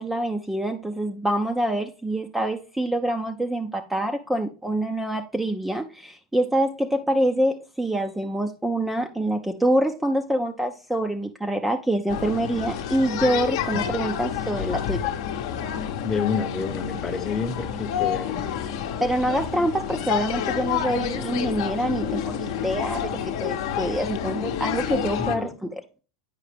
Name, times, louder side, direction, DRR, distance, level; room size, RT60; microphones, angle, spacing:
voice 1, 0.0-15.0 19.0-25.8, right 1 dB, 5° right, 0.4 m, -26 dB
sound 1, 12.1-25.4, left 9 dB, 65° left, 0.7 m, -29 dB
voice 2, 16.0-18.5 25.2-25.6, left 5 dB, 15° left, 0.7 m, -29 dB
8.5 x 4.8 x 3.3 m
supercardioid pair, 120°, 2 cm